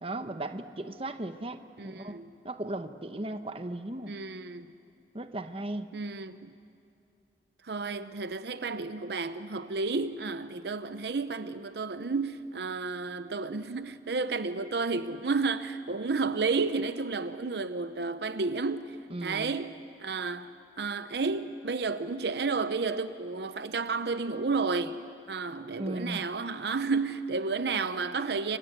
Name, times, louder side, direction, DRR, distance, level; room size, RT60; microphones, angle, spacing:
voice 1, 0.0-2.2 2.4-4.1 5.1-5.9 19.1-19.6 25.8-26.2, right 1 dB, 30° right, 1.0 m, -36 dB
voice 2, 1.8-2.3 4.1-4.7 5.9-6.5 7.6-19.0 19.2-20.5 20.8-25.0 25.3-28.6, right 4 dB, 70° right, 0.7 m, -31 dB
29.5 x 25.0 x 8.0 m
head